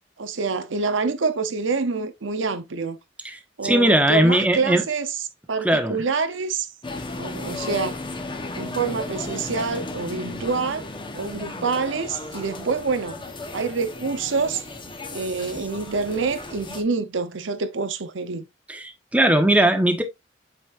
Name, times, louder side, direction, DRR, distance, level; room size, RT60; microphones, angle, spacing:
voice 1, 0.2-3.0 3.6-5.2 5.5-6.7 7.2-8.0 8.5-10.9 11.1-13.2 13.5-14.7 15.1-18.5, right 4 dB, 75° right, 0.8 m, -26 dB
voice 2, 3.2-4.8 5.6-6.0 18.7-20.0, right 1 dB, 5° right, 1.1 m, -19 dB
sound 1, 6.8-16.8, left 2 dB, 25° left, 1.1 m, -35 dB
7.7 x 5.2 x 2.5 m
head